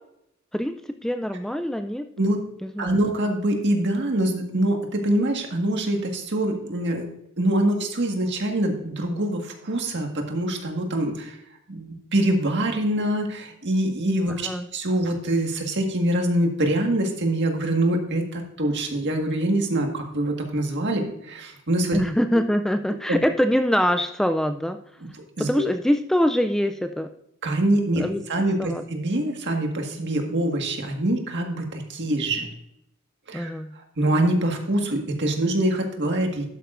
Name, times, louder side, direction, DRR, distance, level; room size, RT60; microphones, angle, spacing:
voice 1, 0.5-2.1 2.6-3.0 14.4-14.7 21.9-24.8 25.4-27.1 28.0-28.2 28.6-28.8 33.3-33.7, equal, ahead, 7 dB, 0.3 m, -24 dB
voice 2, 2.8-7.1 7.4-11.4 11.7-22.0 22.3-22.4 23.1-23.2 25.0-25.1 25.4-25.6 27.4-28.0 28.3-32.5 33.3-36.5, right 1 dB, 55° right, 3 dB, 1.7 m, -24 dB
12.0 x 8.9 x 2.6 m, 0.77 s
head